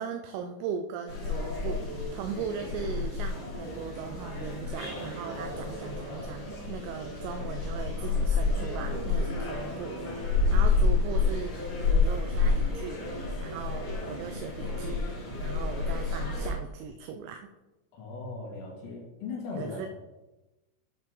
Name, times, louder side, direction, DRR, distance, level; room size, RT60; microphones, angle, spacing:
voice 1, 0.0-11.5 11.8-13.0 13.4-15.0 15.4-17.4 19.6-19.9, right 6 dB, 85° right, 6 dB, 3.2 m, -39 dB
sound 1, 1.1-16.5, left 4 dB, 45° left, 4.6 m, -29 dB
voice 2, 17.9-19.9, left 4 dB, 80° left, -4 dB, 4.4 m, -38 dB
10.5 x 6.3 x 3.7 m, 1.0 s
omnidirectional pair, 5.9 m